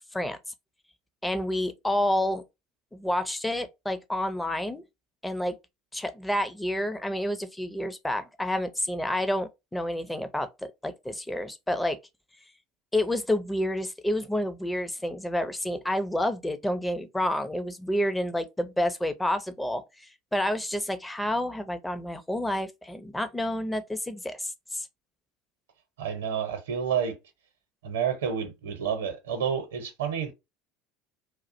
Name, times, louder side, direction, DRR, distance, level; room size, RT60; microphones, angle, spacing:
voice 1, 1.2-2.4 2.9-4.8 5.2-5.6 5.9-12.0 12.9-24.9, left 1 dB, 10° left, 0.5 m, -29 dB
voice 2, 26.0-27.2 27.8-30.3, right 7 dB, 80° right, 0.7 m, -29 dB
2.3 x 2.1 x 2.6 m
hypercardioid pair, 75°, 0 cm